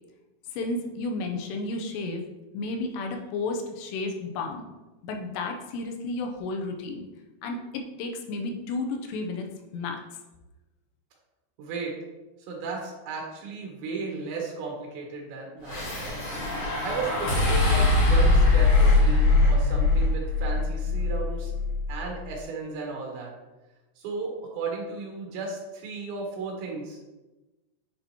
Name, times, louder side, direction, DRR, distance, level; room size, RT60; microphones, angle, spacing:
voice 1, 0.5-2.2 2.5-4.7 5.0-7.1 7.4-9.5 9.7-10.0, left 3 dB, 90° left, 3 dB, 2.9 m, -32 dB
voice 2, 11.6-12.0 12.5-16.2 16.8-21.5 21.9-23.3 24.0-27.2, right 4 dB, 85° right, -1 dB, 3.7 m, -35 dB
sound 1, 15.7-22.0, left 3 dB, 50° left, 1.5 m, -22 dB
10.0 x 4.2 x 2.9 m, 1.1 s
omnidirectional pair, 5.0 m